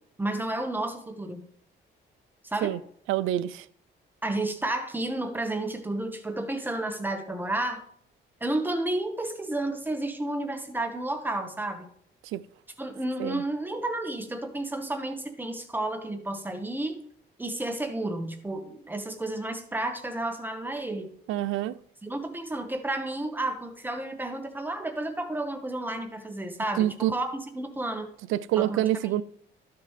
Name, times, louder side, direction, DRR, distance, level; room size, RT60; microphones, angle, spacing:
voice 1, 0.2-1.5 2.4-2.7 4.2-7.8 8.4-11.9 12.8-17.0 17.4-21.1 22.0-28.1 28.6-29.2, right 2 dB, 10° right, 1.4 m, -31 dB
voice 2, 3.1-3.7 12.2-12.4 13.2-13.4 21.3-21.8 26.8-27.1 28.3-29.2, right 13 dB, 85° right, 0.5 m, -26 dB
12.0 x 6.9 x 3.3 m
cardioid pair, 90°, 20 cm